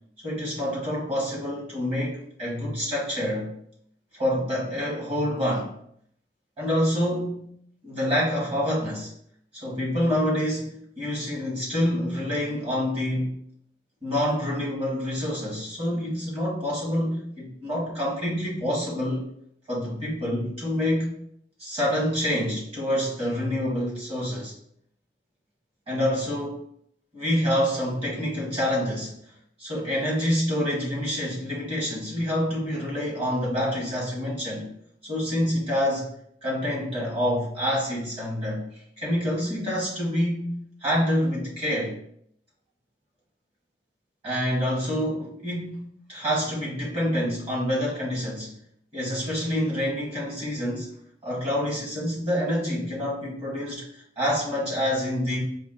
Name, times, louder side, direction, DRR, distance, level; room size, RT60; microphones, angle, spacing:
voice 1, 0.2-3.6 4.1-5.7 6.6-7.5 7.8-9.1 9.5-13.3 14.0-19.3 19.7-21.2 21.6-24.5 25.9-26.6 27.1-29.1 29.6-34.7 35.0-36.1 36.4-38.6 39.0-41.9 44.2-48.5 48.9-50.9 51.2-55.4, equal, 35° right, -4 dB, 1.6 m, -27 dB
4.9 x 2.4 x 3.9 m, 0.69 s
head